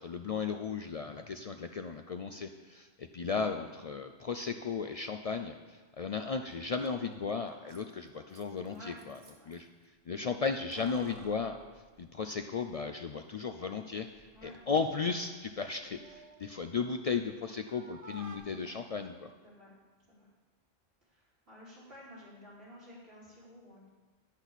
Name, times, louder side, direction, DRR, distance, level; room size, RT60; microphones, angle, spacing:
voice 1, 0.0-9.2 9.4-9.7 10.1-11.6 12.0-19.3, left 5 dB, 55° left, 6 dB, 0.4 m, -35 dB
Keys jangling, 6.5-6.6 6.8-6.9 7.5-9.6 10.5-12.7 13.0-13.1 14.0-14.5 14.9-17.3 17.6-18.4, right 2 dB, 35° right, 0.9 m, -55 dB
voice 2, 8.6-9.0 9.4-9.5 14.3-14.8 19.4-19.7 20.0-20.3 21.0-23.9, equal, 85° right, -8 dB, 4.2 m, -52 dB
10.5 x 9.9 x 4.1 m, 1.3 s
omnidirectional pair, 1.0 m